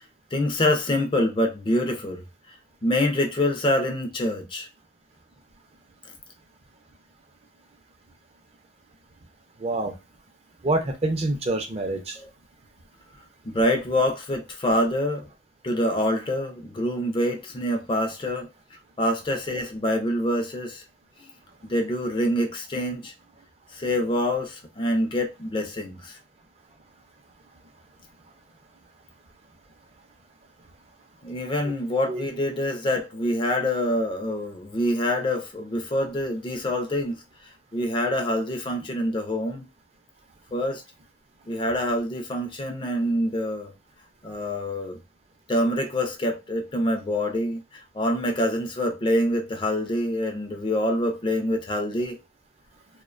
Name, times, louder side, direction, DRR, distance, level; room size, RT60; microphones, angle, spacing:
voice 1, 0.3-2.2 2.8-4.7 13.5-15.3 15.6-18.5 19.0-20.8 21.7-23.1 23.7-26.2 31.2-37.2 37.7-39.7 40.5-40.8 41.5-43.7 44.2-45.0 45.5-52.2, left 1 dB, 25° left, 0.4 m, -26 dB
voice 2, 9.6-9.9 10.6-12.2 31.6-31.7 32.1-32.2, right 2 dB, 35° right, 0.5 m, -26 dB
2.4 x 2.1 x 2.4 m
head